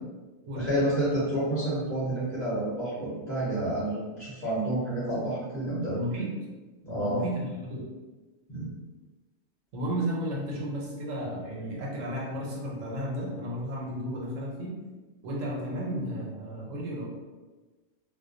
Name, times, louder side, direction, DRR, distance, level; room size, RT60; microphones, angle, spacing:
voice 1, 0.5-6.0 6.8-7.2 8.5-8.7, right 1 dB, 40° left, -11 dB, 0.8 m, -29 dB
voice 2, 5.9-6.3 6.9-7.8 9.7-14.7 15.2-17.1, equal, 80° right, -3 dB, 1.0 m, -33 dB
2.3 x 2.1 x 2.5 m, 1.2 s
omnidirectional pair, 1.4 m